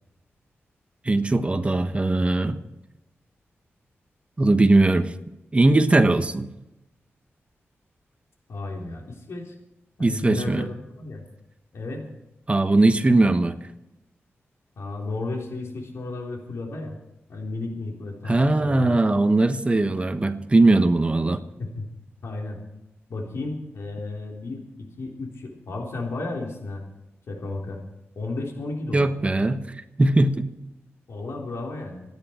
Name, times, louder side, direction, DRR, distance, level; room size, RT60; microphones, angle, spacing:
voice 1, 1.0-2.6 4.4-5.1 5.5-6.5 10.0-10.6 12.5-13.5 18.3-21.4 28.9-30.4, right 2 dB, 25° right, 8 dB, 1.3 m, -20 dB
voice 2, 8.5-9.5 10.0-11.2 11.7-12.1 14.8-17.0 17.3-19.0 21.6-21.9 22.2-22.6 23.1-26.8 27.3-27.8 28.2-29.1 31.1-32.0, left 2 dB, 75° left, 0 dB, 3.7 m, -33 dB
27.0 x 10.5 x 4.5 m, 0.95 s
wide cardioid pair, 95°, 5 cm